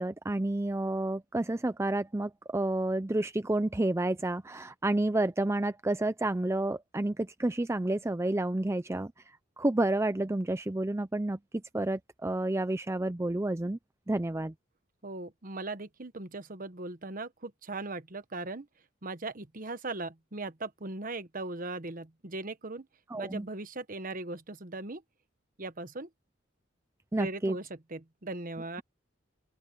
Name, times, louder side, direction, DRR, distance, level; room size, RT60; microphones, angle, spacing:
voice 1, 0.0-9.1 9.6-11.4 11.7-13.8 14.1-14.5 23.1-23.5 27.1-27.6, right 1 dB, 15° right, 0.5 m, -30 dB
voice 2, 15.0-18.7 19.0-22.9 23.2-25.0 25.6-26.1 27.2-28.8, right 2 dB, 45° right, 1.2 m, -39 dB
open air
head